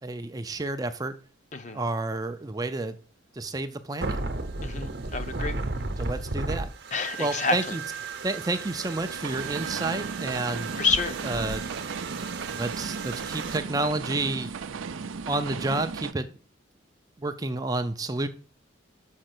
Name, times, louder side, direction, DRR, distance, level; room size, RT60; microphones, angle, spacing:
voice 1, 0.0-1.2 1.7-3.0 3.3-4.2 6.0-6.7 7.2-7.8 8.2-10.7 11.2-11.6 12.5-14.5 15.3-16.3 17.2-18.3, right 2 dB, 20° right, 0.4 m, -30 dB
sound 1, 4.0-13.6, right 3 dB, 55° right, 0.9 m, -34 dB
voice 2, 4.6-5.6 6.9-7.8 10.8-11.2, left 4 dB, 35° left, 0.6 m, -28 dB
sound 2, 6.8-16.1, right 5 dB, 80° right, 0.5 m, -37 dB
6.4 x 5.7 x 5.9 m
head